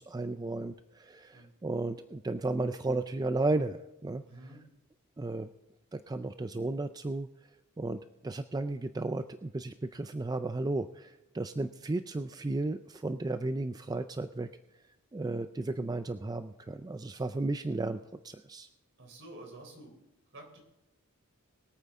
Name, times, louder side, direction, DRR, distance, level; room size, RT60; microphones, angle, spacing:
voice 1, 0.0-4.2 5.2-5.5 5.9-7.3 7.8-14.5 15.1-18.7, right 2 dB, 15° right, 10 dB, 0.4 m, -34 dB
voice 2, 4.3-4.6 19.0-19.9 20.3-20.6, right 1 dB, 55° right, 3 dB, 3.7 m, -49 dB
23.0 x 8.8 x 3.6 m, 1.0 s
head